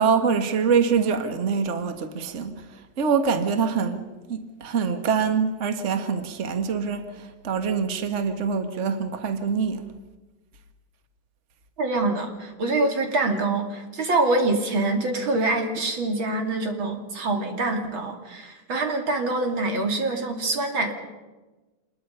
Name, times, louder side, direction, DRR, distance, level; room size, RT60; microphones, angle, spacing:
voice 1, 0.0-9.9, right 6 dB, 40° right, 1.6 m, -25 dB
voice 2, 11.8-20.9, right 2 dB, 85° right, 3.5 m, -25 dB
27.0 x 21.0 x 5.6 m
omnidirectional pair, 2.1 m